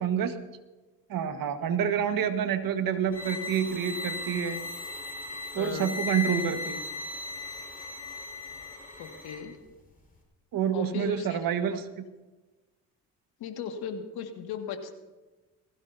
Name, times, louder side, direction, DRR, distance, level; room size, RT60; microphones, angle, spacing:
voice 1, 0.0-0.4 1.1-4.6 5.5-6.8 10.5-12.1, right 8 dB, 65° right, 8 dB, 1.6 m, -28 dB
sound 1, 3.1-9.4, left 3 dB, 25° left, 5.3 m, -37 dB
voice 2, 5.6-5.9 9.0-9.6 10.7-11.4 13.4-15.0, left 7 dB, 85° left, 4 dB, 2.1 m, -37 dB
20.5 x 16.5 x 2.8 m, 1.2 s
cardioid pair, 85°, 37 cm